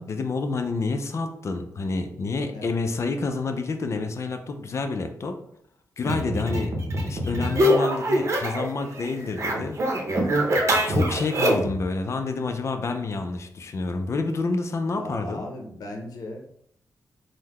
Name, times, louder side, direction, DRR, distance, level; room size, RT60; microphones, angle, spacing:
voice 1, 0.0-5.3 6.0-6.7 7.1-9.8 10.8-15.4, left 3 dB, 50° left, 6 dB, 0.4 m, -28 dB
sound 1, 6.0-8.7 9.0-11.8, equal, 50° right, 0.8 m, -24 dB
voice 2, 14.9-16.4, left 1 dB, 90° left, 1 dB, 0.7 m, -37 dB
3.8 x 2.1 x 3.0 m, 0.69 s
wide cardioid pair, 105°, 6 cm